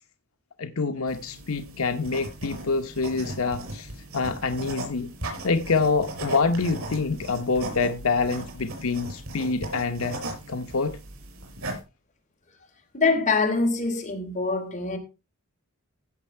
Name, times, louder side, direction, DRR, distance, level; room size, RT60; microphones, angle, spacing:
voice 1, 0.6-5.1 5.4-10.2 10.5-11.0, left 4 dB, 80° left, 0.9 m, -26 dB
sound 1, 1.1-11.8, right 1 dB, 90° right, 5.6 m, -38 dB
voice 2, 12.9-15.0, left 4 dB, 35° left, 3.7 m, -24 dB
16.0 x 6.6 x 4.5 m
head